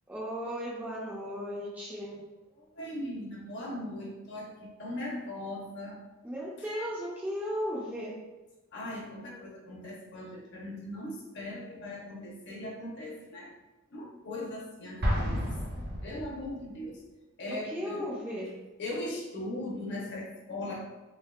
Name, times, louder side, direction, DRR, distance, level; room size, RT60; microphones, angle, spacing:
voice 1, 0.1-2.2 6.2-8.2 17.5-18.6, equal, 10° right, -6 dB, 0.4 m, -36 dB
voice 2, 2.6-6.0 8.7-13.5 13.9-15.4 16.0-17.0 17.4-18.1 18.8-20.8, left 1 dB, 55° left, -3 dB, 0.8 m, -39 dB
Explosion, 15.0-16.7, equal, 50° right, 0.7 m, -31 dB
3.4 x 2.8 x 2.4 m, 1.2 s
head